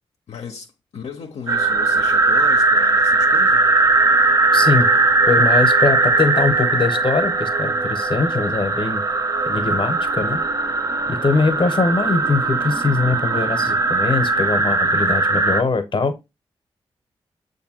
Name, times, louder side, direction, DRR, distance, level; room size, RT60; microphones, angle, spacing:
voice 1, 0.3-3.7, left 6 dB, 80° left, 0.6 m, -36 dB
sound 1, 1.5-15.6, right 3 dB, 30° right, 0.5 m, -19 dB
voice 2, 4.5-4.9 5.3-9.0 9.5-10.4 11.1-16.1, left 4 dB, 50° left, 0.8 m, -21 dB
6.6 x 2.6 x 2.8 m
cardioid pair, 45°, 11 cm